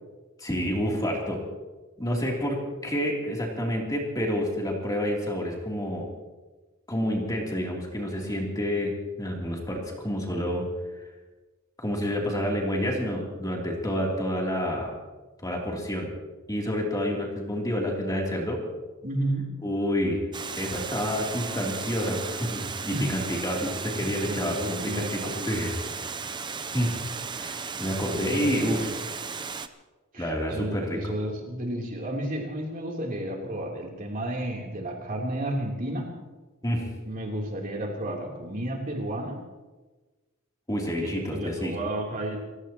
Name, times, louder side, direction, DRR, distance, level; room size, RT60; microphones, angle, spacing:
voice 1, 0.4-1.4 2.0-6.1 6.9-10.7 11.8-14.9 15.4-16.1 16.5-18.6 19.6-20.2 20.6-25.2 25.4-26.3 26.7-27.0 27.4-28.9 30.2-31.0 36.6-36.9 40.7-41.7, equal, 20° left, -2 dB, 3.1 m, -29 dB
voice 2, 19.0-19.5 22.9-23.4 24.0-25.6 27.9-28.9 30.1-36.1 37.0-39.4 40.8-42.4, right 1 dB, 40° right, -1 dB, 3.4 m, -32 dB
Water, 20.3-29.7, right 5 dB, 20° right, 0.7 m, -35 dB
30.0 x 16.0 x 3.0 m, 1.2 s
head